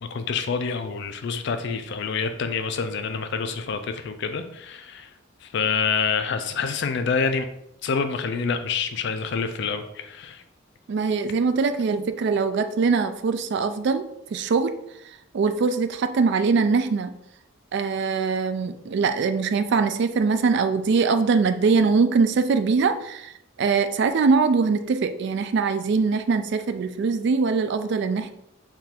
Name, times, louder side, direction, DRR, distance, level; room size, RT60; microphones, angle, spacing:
voice 1, 0.0-5.1 5.4-7.5 7.8-10.4, left 5 dB, 60° left, 8 dB, 0.4 m, -27 dB
voice 2, 10.9-14.0 14.3-14.7 15.3-17.1 17.7-23.3 23.6-28.3, right 4 dB, 60° right, 10 dB, 0.3 m, -22 dB
3.5 x 2.4 x 4.4 m, 0.79 s
head